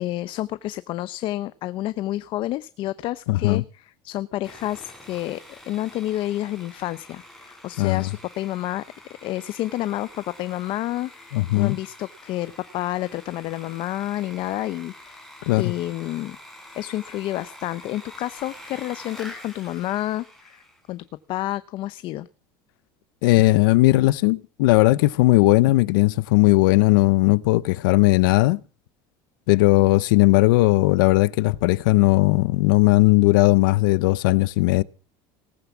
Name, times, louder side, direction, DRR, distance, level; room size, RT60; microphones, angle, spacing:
voice 1, 0.0-8.8 9.2-15.3 15.6-16.4 16.7-22.3, left 15 dB, 50° left, 0.7 m, -29 dB
voice 2, 3.3-3.6 7.8-8.1 11.3-11.8 15.5-15.7 23.2-28.6 29.5-34.8, left 20 dB, 85° left, 0.8 m, -18 dB
Sawing, 4.4-20.9, left 1 dB, ahead, 5.7 m, -46 dB
18.5 x 9.6 x 7.2 m
supercardioid pair, 130°, 11 cm